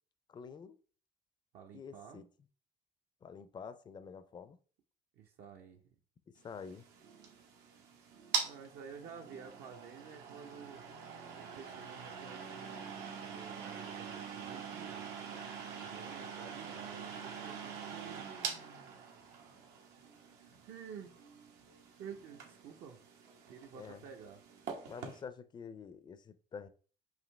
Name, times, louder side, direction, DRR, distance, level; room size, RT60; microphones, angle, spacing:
voice 1, 0.3-0.8 1.7-2.3 3.2-4.6 6.4-6.8 23.7-24.0 24.9-26.7, left 6 dB, 25° left, 0.4 m, -48 dB
voice 2, 1.5-2.2 5.2-6.0 8.4-10.8 11.4-15.1 15.8-18.3 20.7-21.1 22.0-23.0 23.5-24.4, right 7 dB, 70° right, 0.7 m, -51 dB
sound 1, 6.5-25.2, right 6 dB, 90° right, 1.0 m, -44 dB
5.0 x 2.7 x 3.2 m
cardioid pair, 110°, 17 cm